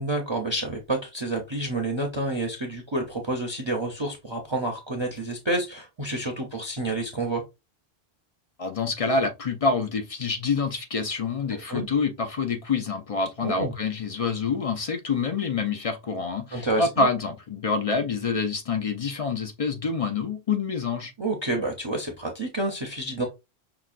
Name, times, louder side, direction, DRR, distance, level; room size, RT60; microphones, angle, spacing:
voice 1, 0.0-7.4 11.5-11.9 13.4-13.7 16.5-17.1 21.2-23.2, right 2 dB, 30° right, 0.6 m, -29 dB
voice 2, 8.6-21.1, left 4 dB, 45° left, 0.5 m, -27 dB
5.8 x 2.2 x 2.5 m
omnidirectional pair, 1.1 m